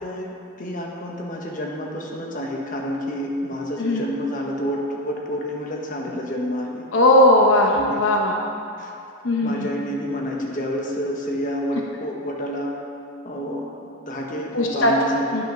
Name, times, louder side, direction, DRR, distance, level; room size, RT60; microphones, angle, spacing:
voice 1, 0.0-6.8 7.7-8.0 8.8-8.9 9.4-12.8 13.2-15.4, equal, 40° left, -1 dB, 1.2 m, -29 dB
voice 2, 6.9-8.3 9.2-9.7 14.5-14.9 15.3-15.4, left 1 dB, 75° left, 0 dB, 0.8 m, -18 dB
9.7 x 6.1 x 5.8 m, 2.5 s
head